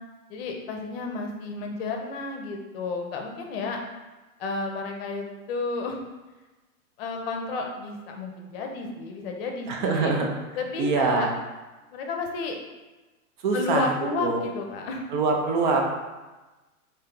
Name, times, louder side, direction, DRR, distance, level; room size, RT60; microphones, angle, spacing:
voice 1, 0.3-3.8 4.4-6.0 7.0-10.2 10.6-11.3 11.9-12.6 13.5-15.1, left 3 dB, 45° left, 2 dB, 0.7 m, -32 dB
voice 2, 9.7-10.3 10.8-11.3 13.4-13.9 14.2-14.4 15.1-15.9, right 4 dB, 35° right, 2 dB, 0.5 m, -24 dB
3.1 x 2.8 x 3.7 m, 1.2 s
hypercardioid pair, 135°, 43 cm